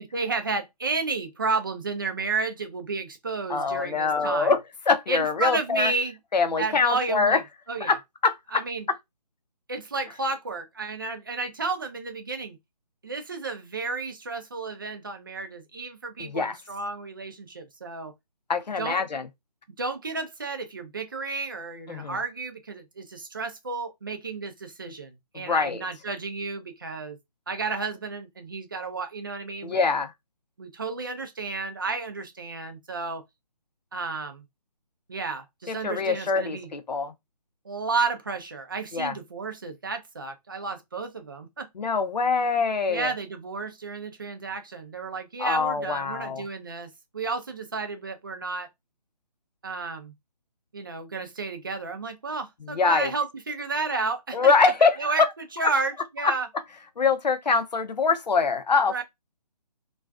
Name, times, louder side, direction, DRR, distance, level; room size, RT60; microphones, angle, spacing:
voice 1, 0.1-4.5 5.1-6.1 6.6-7.4 7.7-8.0 8.5-8.9 9.7-12.6 13.0-18.1 18.8-19.0 19.8-27.2 27.5-29.9 30.6-33.2 33.9-34.4 35.1-36.7 37.7-41.7 42.9-48.7 49.6-50.1 50.7-54.7 55.0-55.2 55.5-56.5 58.9-59.0, right 4 dB, 30° right, 0.4 m, -32 dB
voice 2, 3.5-4.6 4.9-5.9 6.3-7.4 7.8-8.6 8.9-9.0 16.2-16.6 18.5-19.3 21.9-22.2 25.3-25.8 29.6-30.1 35.7-37.1 38.9-39.2 41.8-43.1 45.4-46.4 52.7-53.1 54.3-55.3 55.6-55.7 56.2-56.3 57.0-59.0, left 4 dB, 80° left, 0.6 m, -24 dB
2.4 x 2.3 x 2.3 m
figure-of-eight pair, 155°, 21 cm